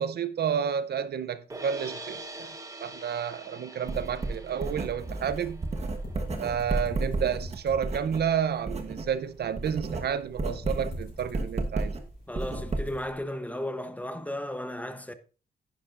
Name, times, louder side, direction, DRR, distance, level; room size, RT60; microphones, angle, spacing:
voice 1, 0.0-2.5 2.8-5.6 6.4-12.0, right 8 dB, 65° right, 0.6 m, -30 dB
sound 1, 1.5-7.7, right 2 dB, 20° right, 1.2 m, -45 dB
Writing, 3.9-9.1 9.4-13.1, right 2 dB, 35° right, 1.3 m, -33 dB
sound 2, 4.6-13.0, left 2 dB, 60° left, 4.7 m, -45 dB
voice 2, 12.3-15.1, left 1 dB, 10° left, 0.8 m, -35 dB
10.5 x 10.0 x 2.5 m
cardioid pair, 115°, 18 cm